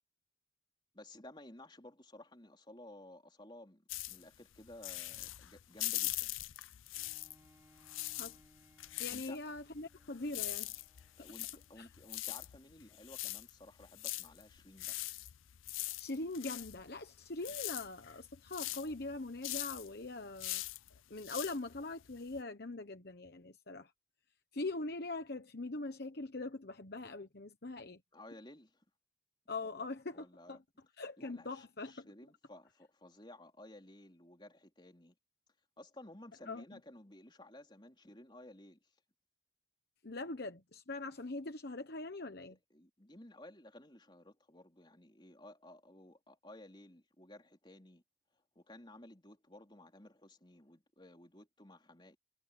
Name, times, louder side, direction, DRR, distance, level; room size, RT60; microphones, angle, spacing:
voice 1, 0.9-6.3 9.1-9.4 11.2-15.0 28.1-28.8 29.6-29.9 30.1-30.6 31.2-35.2 35.8-39.0 42.7-48.0 48.3-52.2, left 1 dB, 25° left, 4.2 m, -55 dB
sound 1, 3.9-7.5 7.8-22.4, left 18 dB, 85° left, 0.5 m, -42 dB
Bowed string instrument, 6.9-12.6 13.2-13.3, equal, 15° right, 3.4 m, -68 dB
voice 2, 9.0-10.8 11.8-11.9 16.0-20.6 21.1-23.9 24.5-28.0 29.5-30.6 31.0-32.1 36.5-36.8 40.0-42.5, left 2 dB, 50° left, 1.1 m, -42 dB
head